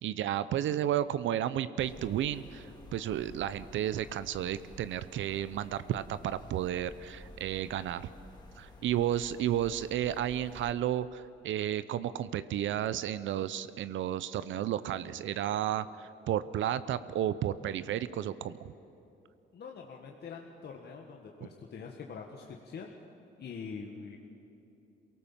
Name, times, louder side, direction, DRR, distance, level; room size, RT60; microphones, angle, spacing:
voice 1, 0.0-8.1 8.6-18.7, right 11 dB, 75° right, 15 dB, 0.7 m, -32 dB
sound 1, 1.8-10.7, left 2 dB, 20° left, 3.3 m, -52 dB
voice 2, 19.5-22.9 23.4-24.2, left 5 dB, 55° left, 1 dB, 1.8 m, -44 dB
23.0 x 18.0 x 7.3 m, 3.0 s
cardioid pair, 90°, 20 cm